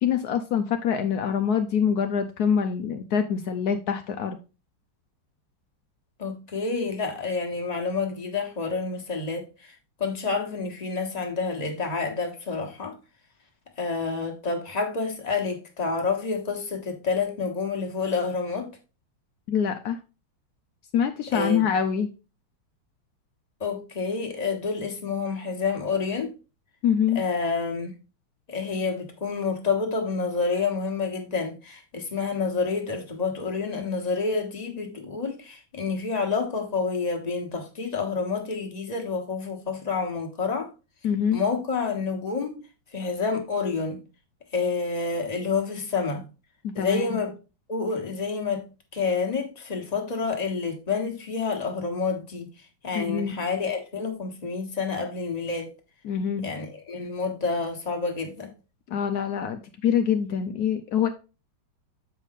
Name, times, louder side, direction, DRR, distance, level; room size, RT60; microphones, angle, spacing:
voice 1, 0.0-4.4 19.5-20.0 20.9-22.1 26.8-27.2 41.0-41.4 46.6-47.2 52.9-53.4 56.0-56.5 58.9-61.1, left 7 dB, 85° left, 0.8 m, -25 dB
voice 2, 6.2-12.9 13.8-18.7 21.3-21.7 23.6-26.3 27.1-27.9 28.5-40.7 41.3-42.6 42.9-44.0 44.5-46.2 46.7-47.3 47.7-48.6 48.9-52.5 52.8-55.7 56.4-58.5, left 4 dB, 25° left, 1.1 m, -28 dB
7.5 x 4.9 x 4.0 m
omnidirectional pair, 2.4 m